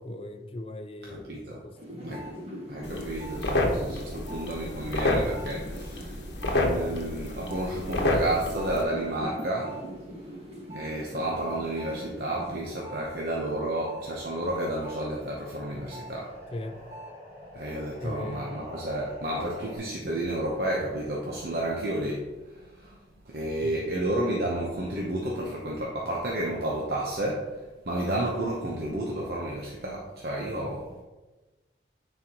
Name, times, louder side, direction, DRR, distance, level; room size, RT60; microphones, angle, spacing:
voice 1, 0.0-2.1 16.5-16.8 18.0-18.5 23.6-23.8, left 1 dB, 30° left, 7 dB, 0.5 m, -39 dB
voice 2, 1.1-1.6 2.0-2.3 2.7-6.2 6.5-9.8 10.7-16.3 17.5-23.0 23.3-31.0, right 1 dB, 60° right, -3 dB, 0.9 m, -31 dB
sound 1, 1.7-13.0 13.4-19.8, equal, 35° right, 1.7 m, -42 dB
sound 2, 2.8-8.8, left 1 dB, 90° left, 1.0 m, -29 dB
9.6 x 4.5 x 2.9 m, 1.2 s
head